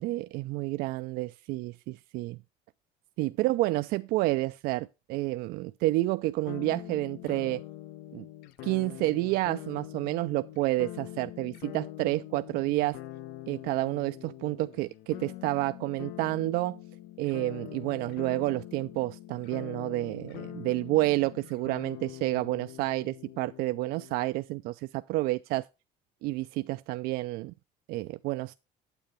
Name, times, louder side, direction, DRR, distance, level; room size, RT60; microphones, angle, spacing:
voice 1, 0.0-2.4 3.2-7.6 8.1-8.3 8.6-13.0 13.5-16.8 17.2-25.6 26.2-27.5 27.9-28.5, right 19 dB, 70° right, 0.4 m, -30 dB
sound 1, 6.5-24.3, left 15 dB, 80° left, 0.6 m, -44 dB
9.1 x 8.3 x 3.1 m
cardioid pair, 160°, 16 cm